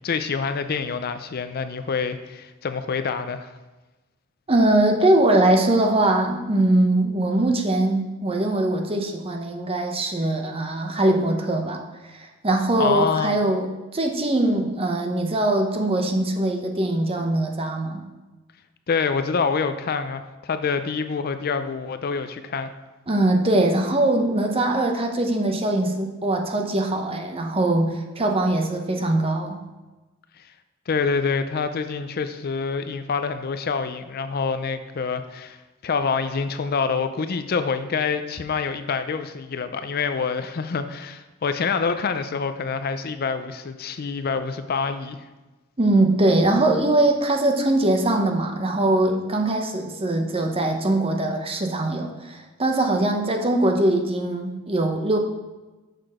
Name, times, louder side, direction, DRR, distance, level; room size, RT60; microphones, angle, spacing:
voice 1, 0.0-3.5 12.8-13.4 18.9-22.7 30.9-45.3, left 5 dB, 45° left, 10 dB, 0.4 m, -26 dB
voice 2, 4.5-11.8 12.1-18.0 23.1-29.6 45.8-55.2, right 1 dB, 30° right, 4 dB, 0.8 m, -22 dB
6.7 x 6.0 x 4.8 m, 1.1 s
head